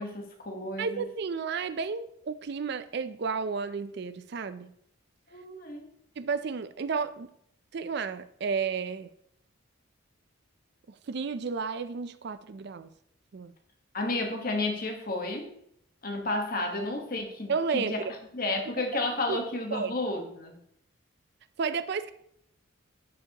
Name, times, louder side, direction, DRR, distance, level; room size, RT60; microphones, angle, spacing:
voice 1, 0.0-1.1 5.3-5.9 13.9-15.5 16.0-18.0 18.3-20.6, left 2 dB, 40° left, 1.2 m, -32 dB
voice 2, 0.8-4.7 6.2-7.3 7.7-9.1 10.9-12.9 13.3-13.5 17.5-18.1 19.3-19.4 19.7-19.9 21.6-22.1, right 5 dB, 50° right, 0.4 m, -32 dB
12.0 x 4.9 x 2.9 m
head